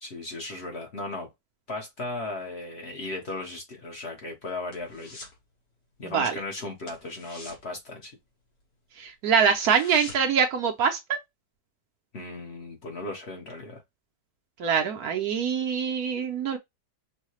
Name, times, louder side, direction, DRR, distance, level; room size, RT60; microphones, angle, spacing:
voice 1, 0.0-1.3 1.7-5.2 6.0-8.1 12.1-13.8, left 2 dB, 45° left, 1.1 m, -36 dB
sound 1, 3.8-5.4 5.7-6.0 6.3-6.4 6.8-8.7 9.0-9.1 9.4-10.5 10.8-10.9, left 2 dB, 75° left, 2.1 m, -45 dB
voice 2, 6.0-6.4 9.0-11.2 14.6-16.6, right 7 dB, 70° right, 1.1 m, -24 dB
5.5 x 2.2 x 3.0 m
omnidirectional pair, 1.8 m